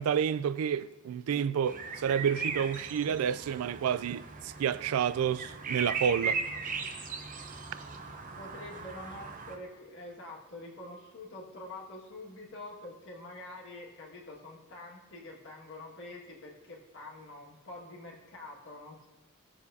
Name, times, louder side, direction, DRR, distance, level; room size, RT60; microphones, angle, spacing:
voice 1, 0.0-6.4, right 8 dB, 85° right, 0.3 m, -30 dB
sound 1, 1.6-9.6, right 5 dB, 40° right, 0.8 m, -38 dB
voice 2, 8.3-19.1, left 2 dB, 60° left, 1.8 m, -46 dB
18.0 x 7.1 x 2.7 m
head